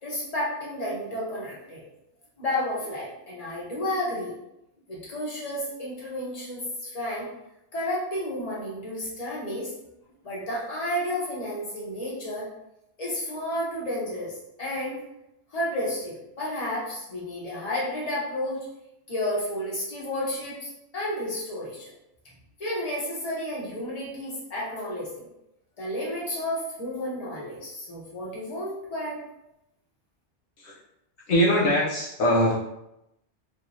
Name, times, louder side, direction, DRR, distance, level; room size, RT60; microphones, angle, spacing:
voice 1, 0.0-1.8 2.4-4.3 4.9-7.3 7.7-9.7 10.2-12.5 13.0-15.0 15.5-18.6 19.1-20.7 20.9-21.9 22.6-25.3 25.8-29.2, left 1 dB, 35° left, -5 dB, 1.0 m, -31 dB
voice 2, 31.3-32.5, equal, 85° left, -5 dB, 1.0 m, -22 dB
3.0 x 2.7 x 2.7 m, 0.86 s
omnidirectional pair, 1.2 m